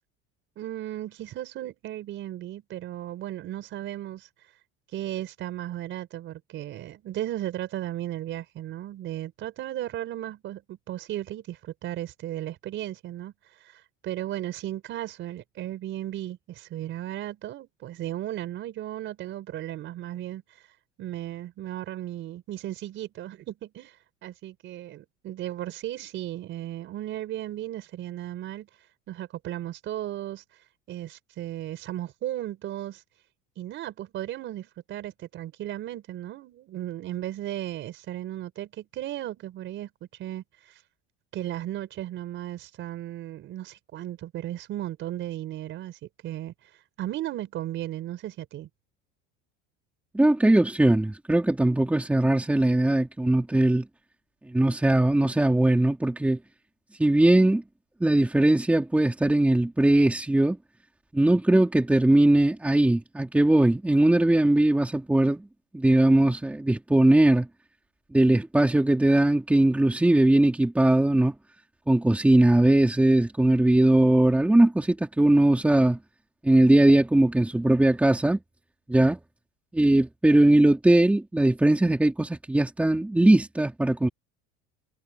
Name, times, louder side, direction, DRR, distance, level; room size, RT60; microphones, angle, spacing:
voice 1, 0.6-4.5 4.9-20.7 21.0-28.7 29.1-33.0 33.6-40.8 41.3-48.7, right 13 dB, 40° right, 4.5 m, -35 dB
voice 2, 50.1-53.9 54.5-56.4 57.0-57.6 58.0-60.6 61.1-65.5 65.7-67.5 68.1-71.3 71.9-76.0 76.4-78.4 78.9-79.2 79.7-84.1, right 1 dB, 5° right, 2.9 m, -20 dB
cardioid pair, 160°, 29 cm